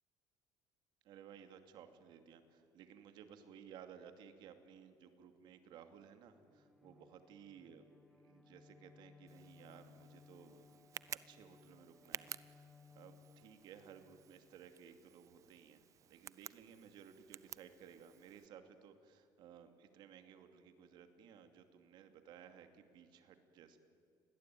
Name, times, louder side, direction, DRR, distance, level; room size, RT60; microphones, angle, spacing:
voice 1, 1.0-7.8 8.2-12.7 12.9-23.8, right 8 dB, 60° right, 8 dB, 2.6 m, -58 dB
Bowed string instrument, 6.4-14.8, left 5 dB, 5° left, 1.4 m, -64 dB
Tick, 9.3-18.5, right 10 dB, 40° right, 0.7 m, -53 dB
29.5 x 21.5 x 9.3 m, 2.4 s
cardioid pair, 145°, 8 cm